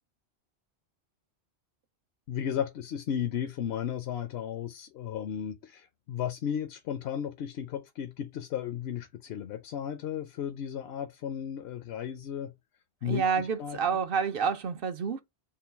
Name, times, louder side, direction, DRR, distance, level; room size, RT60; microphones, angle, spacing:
voice 1, 2.3-12.5 13.0-13.8, left 9 dB, 70° left, 0.8 m, -34 dB
voice 2, 13.0-15.2, right 6 dB, 60° right, 0.7 m, -28 dB
3.8 x 2.2 x 4.4 m
omnidirectional pair, 1.1 m